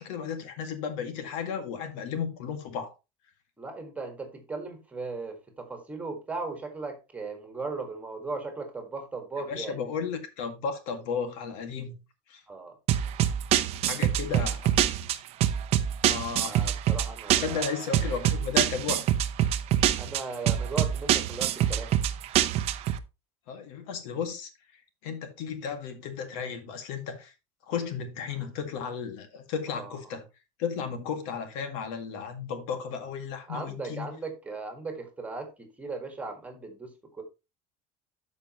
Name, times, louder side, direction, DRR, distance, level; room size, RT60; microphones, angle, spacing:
voice 1, 0.0-2.9 9.5-12.0 12.3-12.4 13.8-14.8 16.0-16.6 17.4-19.0 23.5-27.3 27.7-30.2 30.6-34.1, left 6 dB, 75° left, 2.0 m, -34 dB
voice 2, 3.6-9.8 12.5-12.7 16.5-18.0 20.0-21.9 27.7-27.8 28.3-28.5 29.7-30.0 33.5-37.2, right 3 dB, 10° right, 1.7 m, -37 dB
sound 1, 12.9-23.0, right 11 dB, 40° right, 0.7 m, -25 dB
12.5 x 5.3 x 3.0 m
cardioid pair, 175°, 17 cm